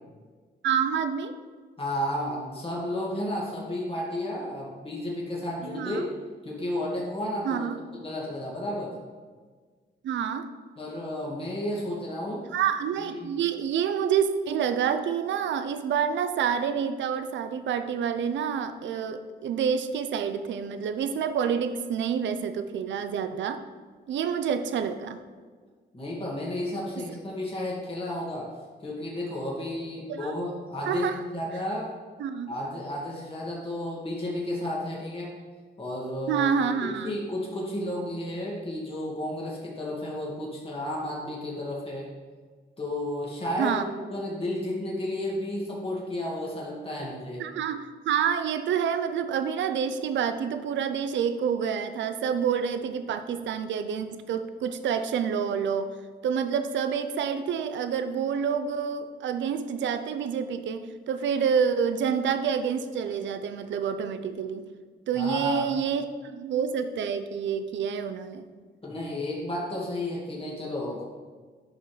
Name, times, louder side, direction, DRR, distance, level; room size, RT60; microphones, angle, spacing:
voice 1, 0.6-1.3 5.6-6.0 7.4-7.7 10.0-10.5 12.5-23.6 24.1-25.2 30.1-30.3 30.9-31.2 32.2-32.5 36.3-37.1 43.6-43.8 47.0-47.1 47.4-55.9 56.2-64.7 65.1-68.5, right 7 dB, 80° right, 10 dB, 0.6 m, -28 dB
voice 2, 1.8-6.1 6.4-8.9 10.8-12.5 12.9-13.3 25.9-28.5 28.8-31.9 32.5-35.4 35.8-36.5 36.8-42.1 42.8-43.8 44.1-47.4 65.1-65.7 68.8-71.0, left 1 dB, 30° left, -4 dB, 2.0 m, -32 dB
9.9 x 5.6 x 3.2 m, 1.5 s
cardioid pair, 80°, 19 cm